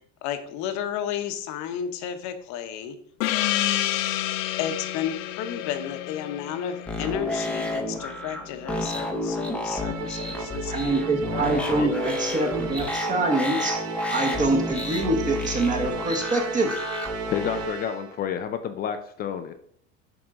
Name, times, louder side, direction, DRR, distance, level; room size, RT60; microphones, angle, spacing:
voice 1, 0.2-3.0 4.6-12.4, left 9 dB, 50° left, 8 dB, 1.0 m, -33 dB
Gong, 3.2-8.3, left 14 dB, 85° left, 0.6 m, -29 dB
sound 1, 6.9-17.7, left 1 dB, 5° left, 0.8 m, -31 dB
Musical instrument, 9.7-18.2, right 5 dB, 40° right, 0.9 m, -36 dB
voice 2, 10.7-13.8 14.1-16.8, right 2 dB, 20° right, 1 dB, 1.2 m, -25 dB
voice 3, 17.3-19.5, left 9 dB, 25° left, 8 dB, 0.3 m, -29 dB
10.5 x 3.7 x 3.7 m, 0.65 s
supercardioid pair, 135°, 37 cm